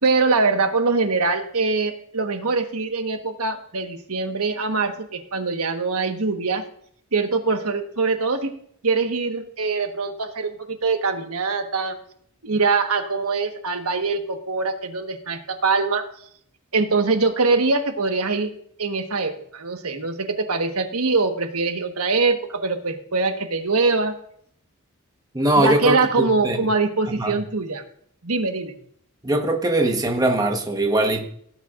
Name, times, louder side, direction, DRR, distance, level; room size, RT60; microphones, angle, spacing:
voice 1, 0.0-6.6 7.1-8.5 8.8-12.0 12.4-16.1 16.7-18.5 18.8-24.2 25.6-27.8 28.2-28.7, right 4 dB, 70° right, 6 dB, 1.4 m, -23 dB
voice 2, 25.3-26.6 27.1-27.4 29.2-31.3, right 1 dB, 15° right, 3 dB, 1.3 m, -21 dB
17.5 x 9.1 x 2.5 m, 0.63 s
head